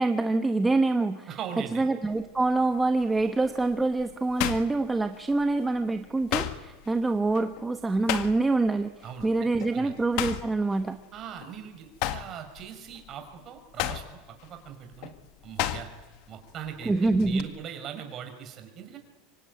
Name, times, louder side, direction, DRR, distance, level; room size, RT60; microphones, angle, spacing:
voice 1, 0.0-1.3 1.7-8.9 9.2-11.0 16.8-17.5, right 3 dB, 10° right, 7 dB, 1.0 m, -25 dB
voice 2, 1.3-1.8 9.0-9.9 11.1-14.0 14.4-15.1 15.4-15.9 16.3-19.0, right 8 dB, 35° right, 6 dB, 5.1 m, -40 dB
sound 1, 2.1-2.5 3.0-5.5 5.8-8.7 9.0-9.3 9.6-11.5 11.9-16.2 16.5-17.4, left 13 dB, 55° left, 1.7 m, -34 dB
25.0 x 24.5 x 9.5 m, 1.3 s
supercardioid pair, 150°, 0 cm